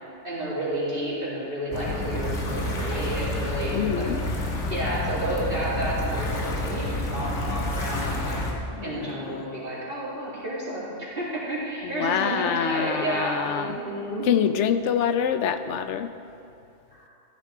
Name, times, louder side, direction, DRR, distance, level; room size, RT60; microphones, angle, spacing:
voice 1, 0.2-4.1 4.7-8.4 8.8-14.3 16.9-17.0, right 1 dB, 50° right, -9 dB, 2.7 m, -31 dB
sound 1, 1.7-8.5, left 1 dB, 90° left, 1.6 m, -29 dB
voice 2, 3.7-4.2 8.7-9.4 11.8-13.8 14.3-16.1, left 8 dB, 75° left, 8 dB, 0.9 m, -26 dB
14.5 x 9.3 x 3.7 m, 2.7 s
omnidirectional pair, 1.2 m